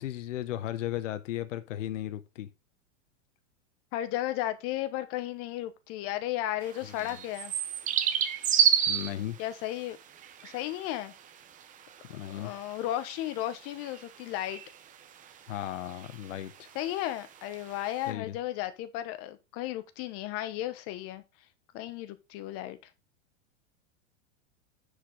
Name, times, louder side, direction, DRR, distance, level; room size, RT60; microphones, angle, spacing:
voice 1, 0.0-2.5 7.0-7.2 8.9-9.4 12.0-12.5 15.5-16.7 18.1-18.4, left 12 dB, 85° left, 0.9 m, -36 dB
voice 2, 3.9-7.5 9.4-10.0 10.4-11.1 12.3-14.6 16.7-21.2 21.7-22.8, left 13 dB, 40° left, 1.2 m, -34 dB
sound 1, 6.6-18.1, right 9 dB, 20° right, 0.8 m, -31 dB
9.8 x 5.0 x 3.9 m
supercardioid pair, 145°, 37 cm